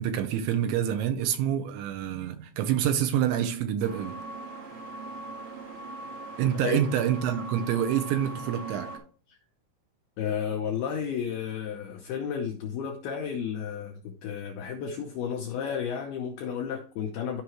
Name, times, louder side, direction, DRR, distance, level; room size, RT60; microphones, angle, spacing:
voice 1, 0.0-4.1 6.4-8.9, right 10 dB, 80° right, 3.1 m, -27 dB
sound 1, 3.8-9.0, right 2 dB, 55° right, 1.2 m, -40 dB
voice 2, 10.2-17.4, left 7 dB, 85° left, 2.2 m, -32 dB
13.0 x 5.6 x 3.1 m
omnidirectional pair, 5.6 m